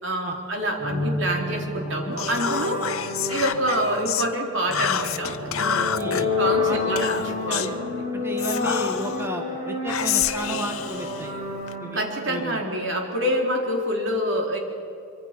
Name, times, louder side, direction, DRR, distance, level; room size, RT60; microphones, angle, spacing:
voice 1, 0.0-2.8 3.3-5.9 6.4-7.7 11.9-14.6, equal, 60° right, 1 dB, 4.1 m, -26 dB
sound 1, 0.8-13.3, left 3 dB, 30° right, 4.7 m, -30 dB
Whispering, 2.2-4.3 4.7-6.2 6.9-7.8 8.4-9.3 9.9-11.7, left 9 dB, 85° left, 0.9 m, -28 dB
voice 2, 5.9-6.3 6.7-7.7 8.1-11.3 11.8-12.0 12.3-12.6, right 1 dB, 10° right, 3 dB, 1.7 m, -32 dB
25.0 x 25.0 x 6.1 m, 2.8 s
head